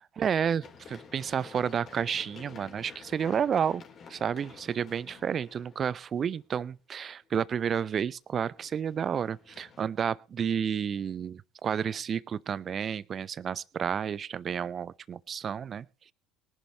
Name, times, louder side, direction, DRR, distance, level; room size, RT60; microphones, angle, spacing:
voice 1, 0.0-3.8 4.1-15.9, right 7 dB, 35° right, 23 dB, 0.6 m, -31 dB
Run, 0.6-6.5 8.3-9.8, left 5 dB, 35° left, 3.4 m, -51 dB
22.5 x 11.0 x 2.9 m, 0.31 s
figure-of-eight pair, 60°, 0 cm